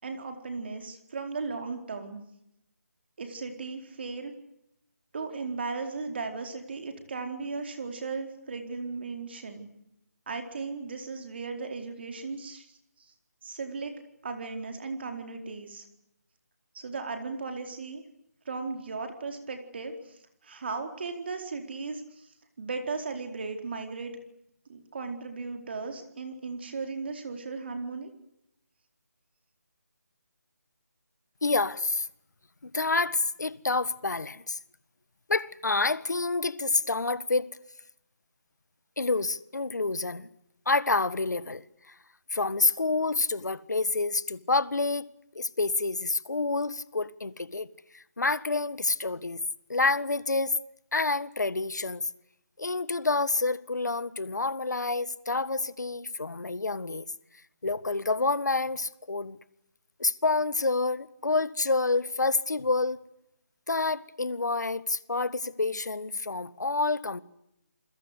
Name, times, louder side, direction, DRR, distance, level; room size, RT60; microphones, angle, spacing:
voice 1, 0.0-2.2 3.2-4.3 5.1-9.7 10.3-13.1 13.4-15.8 16.7-18.0 18.4-24.1 24.7-28.1, right 4 dB, 40° right, 4.4 m, -36 dB
voice 2, 31.4-32.1 32.6-34.6 35.3-37.6 39.0-40.3 40.6-41.9 42.3-45.1 45.3-47.7 47.9-49.4 49.7-50.5 50.9-52.1 52.6-57.0 57.6-59.4 60.0-63.0 63.7-67.2, left 3 dB, 90° left, 1.6 m, -28 dB
29.0 x 21.5 x 8.3 m
figure-of-eight pair, 170°, 9 cm